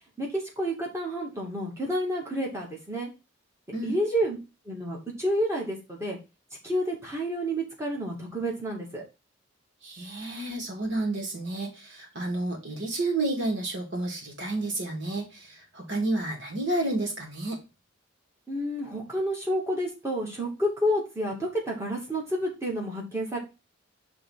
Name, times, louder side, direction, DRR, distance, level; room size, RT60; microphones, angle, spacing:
voice 1, 0.2-3.1 3.8-4.4 4.7-6.2 6.6-9.0 18.5-23.4, equal, 15° right, -2 dB, 2.2 m, -29 dB
voice 2, 9.8-17.6, right 2 dB, 60° right, 1 dB, 2.7 m, -30 dB
5.8 x 3.6 x 5.6 m, 0.28 s
head